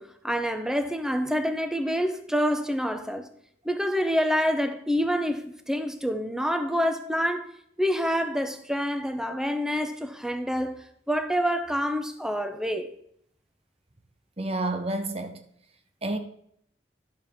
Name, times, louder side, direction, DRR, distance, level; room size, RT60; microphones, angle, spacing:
voice 1, 0.0-3.3 3.6-7.5 7.8-10.8 11.1-12.9, equal, 5° right, 0.6 m, -27 dB
voice 2, 14.4-15.4 16.0-16.2, right 2 dB, 35° right, 0.9 m, -29 dB
11.5 x 7.0 x 3.5 m
head